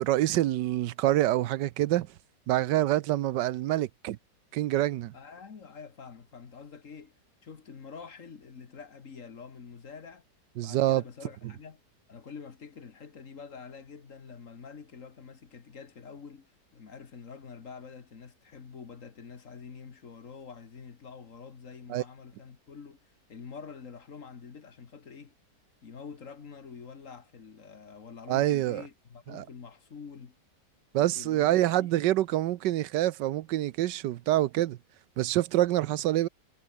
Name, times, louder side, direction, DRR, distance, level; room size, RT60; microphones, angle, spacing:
voice 1, 0.0-2.1 2.5-4.2 4.5-5.1 10.6-11.0 21.9-22.0 28.3-28.8 29.3-29.4 30.9-34.8 35.2-36.3, right 14 dB, 85° right, 1.3 m, -26 dB
voice 2, 5.1-7.1 7.4-10.2 10.6-11.8 12.1-23.0 23.3-25.3 25.8-30.4 30.9-31.9, left 5 dB, 50° left, 1.9 m, -46 dB
omnidirectional pair, 1.9 m